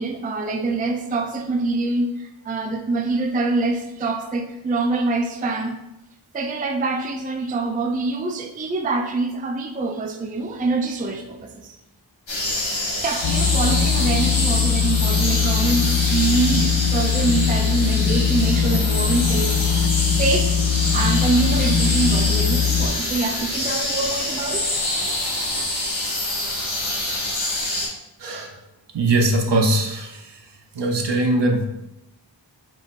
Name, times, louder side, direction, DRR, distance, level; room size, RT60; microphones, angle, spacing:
voice 1, 0.0-5.7 6.3-11.8 13.0-19.6 20.2-20.6 20.9-24.7, right 3 dB, 20° right, 4 dB, 0.3 m, -25 dB
sound 1, 12.3-27.9, left 1 dB, 85° left, 1.2 m, -25 dB
sound 2, 13.2-22.9, left 7 dB, 60° left, 0.6 m, -21 dB
voice 2, 28.2-28.6 28.9-30.4 30.7-31.6, right 2 dB, 65° right, 2 dB, 0.7 m, -21 dB
4.7 x 3.1 x 2.4 m, 0.91 s
wide cardioid pair, 45°, 45 cm